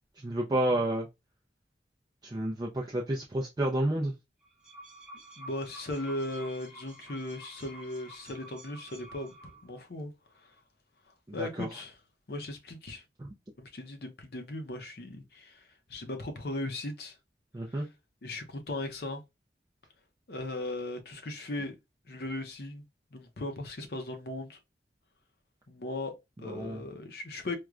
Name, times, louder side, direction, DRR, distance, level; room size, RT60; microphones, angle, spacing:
voice 1, 0.2-1.1 2.2-4.1 11.3-11.7 17.5-17.9 26.5-26.8, right 1 dB, 20° right, 0.4 m, -30 dB
sound 1, 4.4-9.8, right 1 dB, 5° right, 0.8 m, -50 dB
voice 2, 5.4-10.5 11.3-12.0 12.3-13.0 13.6-17.2 17.7-17.9 18.2-19.2 20.3-21.8 22.1-22.8 23.1-24.6 25.7-27.6, left 2 dB, 60° left, 0.6 m, -38 dB
4.6 x 2.1 x 2.4 m
head